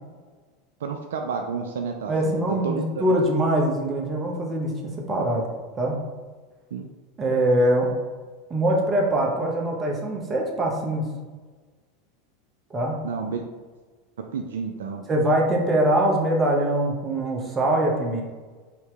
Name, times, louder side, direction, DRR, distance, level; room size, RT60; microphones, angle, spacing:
voice 1, 0.8-3.0 6.7-6.9 13.0-13.4 14.2-15.1, right 5 dB, 75° right, 4 dB, 0.3 m, -31 dB
voice 2, 2.1-5.5 5.7-6.0 7.2-7.9 8.5-11.1 12.7-13.0 15.1-18.2, right 1 dB, 25° right, -1 dB, 1.0 m, -23 dB
4.4 x 2.9 x 3.3 m, 1.4 s
hypercardioid pair, 85°, 0 cm